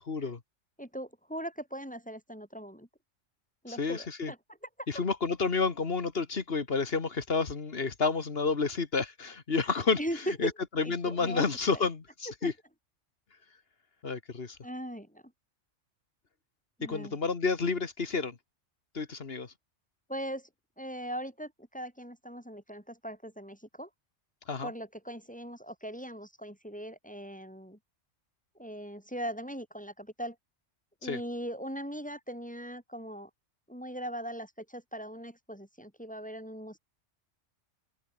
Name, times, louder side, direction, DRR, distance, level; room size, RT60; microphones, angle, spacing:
voice 1, 0.1-0.4 3.7-4.3 4.9-10.0 10.4-10.5 10.8-12.5 14.0-14.6 16.8-18.4 18.9-19.5 24.5-24.7 31.0-31.2, left 4 dB, 50° left, 1.8 m, -30 dB
voice 2, 0.8-2.9 3.6-4.4 4.8-4.9 10.0-10.5 10.8-11.8 12.4-12.5 14.6-15.2 16.8-17.2 20.1-20.5 20.8-23.9 24.6-27.8 28.6-30.3 31.0-33.3 33.7-36.8, equal, 5° left, 3.2 m, -39 dB
open air
omnidirectional pair, 1.3 m